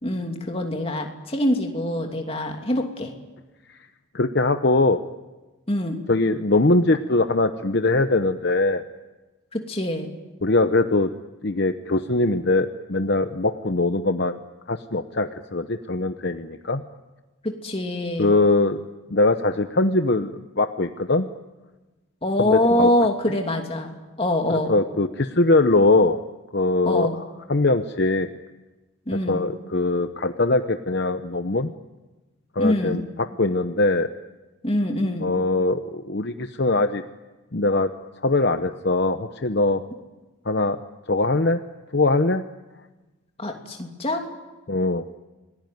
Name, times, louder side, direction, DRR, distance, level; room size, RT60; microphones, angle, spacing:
voice 1, 0.0-3.1 5.7-6.0 9.5-10.1 17.4-18.3 22.2-24.7 26.9-27.1 29.1-29.4 32.6-33.0 34.6-35.3 43.4-44.2, left 1 dB, 30° left, 3 dB, 2.9 m, -24 dB
voice 2, 4.1-5.0 6.1-8.8 10.4-11.1 11.4-14.4 14.7-16.8 18.2-18.8 19.1-21.3 22.4-22.9 23.3-23.4 24.5-26.2 26.5-27.1 27.5-28.3 29.3-31.7 32.5-34.1 35.2-37.0 37.5-37.9 38.2-39.8 40.4-40.8 41.1-41.6 41.9-42.4 44.7-45.0, left 2 dB, 50° left, 8 dB, 0.9 m, -21 dB
28.5 x 20.0 x 9.4 m, 1.2 s
head